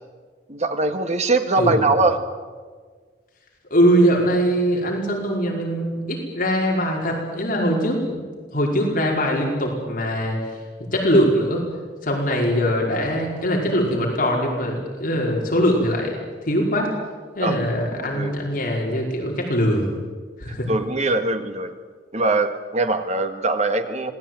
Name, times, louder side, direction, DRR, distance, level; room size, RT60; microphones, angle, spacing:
voice 1, 0.5-2.3 17.4-17.6 18.0-18.3 20.5-21.7 22.1-24.1, right 2 dB, 40° right, 7 dB, 1.8 m, -22 dB
voice 2, 1.6-2.0 3.7-8.2 8.5-10.6 10.9-11.6 12.0-16.9 17.3-19.9 20.4-20.7, equal, 50° left, -1 dB, 5.1 m, -22 dB
26.5 x 19.0 x 9.2 m, 1.5 s
head